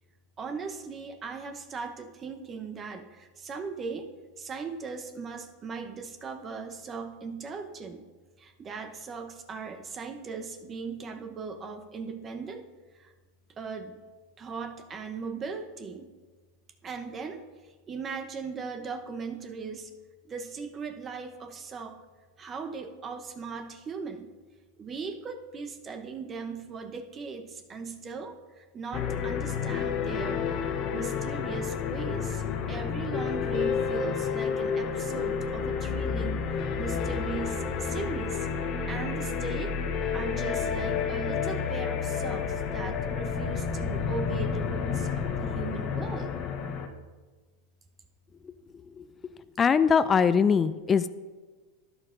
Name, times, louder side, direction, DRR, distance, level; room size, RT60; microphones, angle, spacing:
voice 1, 0.4-4.1 4.4-8.0 8.4-12.6 12.9-13.1 13.6-14.0 14.4-16.1 16.8-17.4 17.9-19.9 20.2-21.9 22.4-24.3 24.8-32.4 32.7-36.5 36.8-38.5 38.9-39.8 40.1-46.3, right 5 dB, 30° right, 7 dB, 0.8 m, -38 dB
sound 1, 28.9-46.9, left 6 dB, 45° left, 0.8 m, -30 dB
voice 2, 49.6-51.1, left 6 dB, 25° left, 14 dB, 0.3 m, -22 dB
13.0 x 9.6 x 2.6 m, 1.3 s
hypercardioid pair, 95°, 0 cm